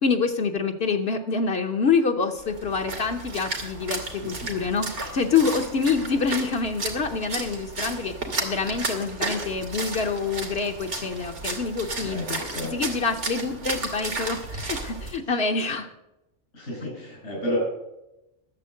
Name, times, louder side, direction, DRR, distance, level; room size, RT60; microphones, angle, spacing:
voice 1, 0.0-8.1 8.4-12.4 12.7-15.9, left 5 dB, 65° left, 3 dB, 1.1 m, -26 dB
Splash splatter, 2.4-15.2, right 3 dB, 85° right, 2.3 m, -33 dB
voice 2, 12.0-12.7 16.5-17.6, left 1 dB, 85° left, -4 dB, 6.3 m, -31 dB
12.0 x 7.2 x 7.6 m, 0.91 s
omnidirectional pair, 1.2 m